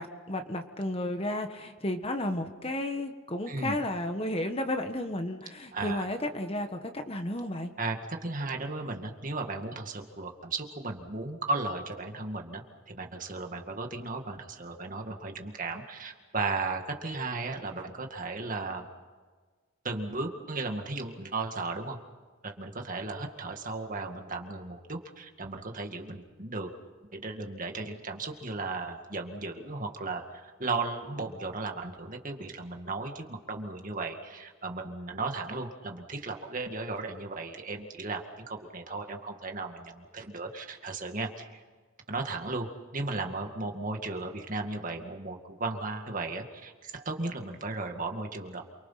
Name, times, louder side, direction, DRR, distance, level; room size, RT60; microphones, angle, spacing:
voice 1, 0.0-7.7, left 1 dB, 30° left, 6 dB, 1.4 m, -33 dB
voice 2, 3.5-3.8 5.7-6.1 7.8-18.9 19.8-22.0 22.4-26.7 27.1-41.6 42.1-48.6, right 3 dB, 40° right, 3 dB, 2.2 m, -35 dB
28.5 x 24.0 x 5.9 m, 1.4 s
head